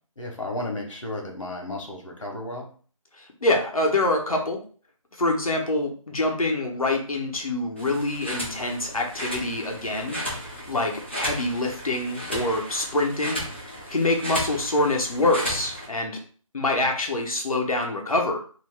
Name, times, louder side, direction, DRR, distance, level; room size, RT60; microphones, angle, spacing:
voice 1, 0.2-2.7, left 1 dB, 60° left, 1 dB, 1.0 m, -33 dB
voice 2, 3.1-4.6 5.1-10.2 10.7-13.4 13.9-16.2 16.5-18.4, left 2 dB, 85° left, 1 dB, 0.9 m, -25 dB
sound 1, 7.8-15.9, equal, 20° left, 0.5 m, -34 dB
2.7 x 2.1 x 3.2 m, 0.42 s
figure-of-eight pair, 175°, 18 cm